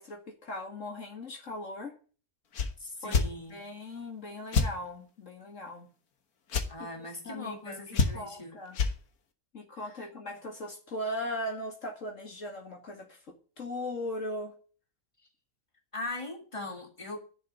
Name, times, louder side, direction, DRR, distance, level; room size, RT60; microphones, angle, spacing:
voice 1, 0.0-1.9 3.0-3.2 3.5-5.9 6.8-8.8 9.5-14.5, left 1 dB, 60° left, 2.5 m, -39 dB
sound 1, 2.5-2.7 3.1-3.3 4.5-4.7 6.5-6.7 7.9-8.4 8.7-8.9, left 4 dB, 85° left, 2.0 m, -26 dB
voice 2, 2.8-3.7 6.7-8.6 15.9-17.2, left 2 dB, 20° left, 2.9 m, -40 dB
10.5 x 7.0 x 9.4 m
omnidirectional pair, 1.5 m